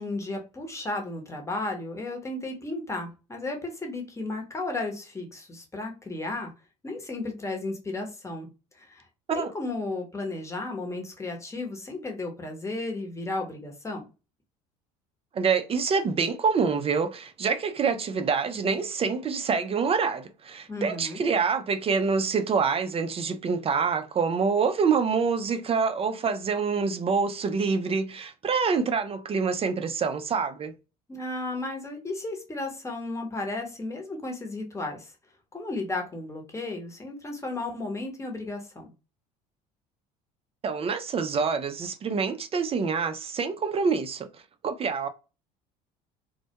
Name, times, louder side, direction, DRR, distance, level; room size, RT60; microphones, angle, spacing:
voice 1, 0.0-6.5 6.8-8.5 8.7-9.0 9.3-14.0 20.7-21.2 31.1-35.1 35.5-38.9, left 2 dB, 15° left, 0.9 m, -34 dB
voice 2, 15.3-30.7 40.6-44.3 44.6-45.1, right 5 dB, 30° right, 0.4 m, -26 dB
2.1 x 2.0 x 2.8 m
hypercardioid pair, 75°, 20 cm